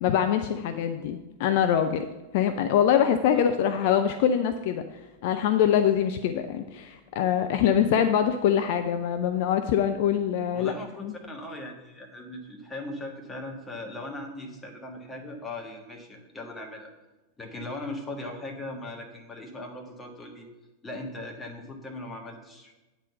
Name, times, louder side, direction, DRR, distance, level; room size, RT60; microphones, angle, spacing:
voice 1, 0.0-2.1 2.3-4.8 5.2-10.7 11.0-11.1, left 9 dB, 50° left, 8 dB, 0.4 m, -24 dB
voice 2, 10.5-16.9 17.4-20.5 20.8-22.8, left 1 dB, 10° left, 1 dB, 1.5 m, -39 dB
8.9 x 4.1 x 7.0 m, 1.1 s
figure-of-eight pair, 90°, 0 cm